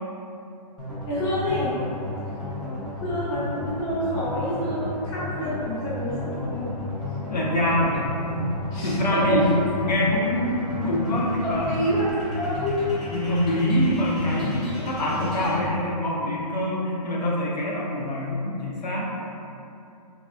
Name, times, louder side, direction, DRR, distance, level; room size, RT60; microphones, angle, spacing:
sound 1, 0.8-15.5, left 2 dB, ahead, 0.5 m, -33 dB
voice 1, 1.1-1.7 3.0-6.7 8.7-9.4 11.4-12.8, equal, 20° left, -10 dB, 0.8 m, -27 dB
voice 2, 7.3-9.5 9.8-11.8 13.1-19.0, left 1 dB, 90° left, -4 dB, 0.7 m, -25 dB
3.5 x 2.3 x 2.5 m, 2.7 s
hypercardioid pair, 150°, 21 cm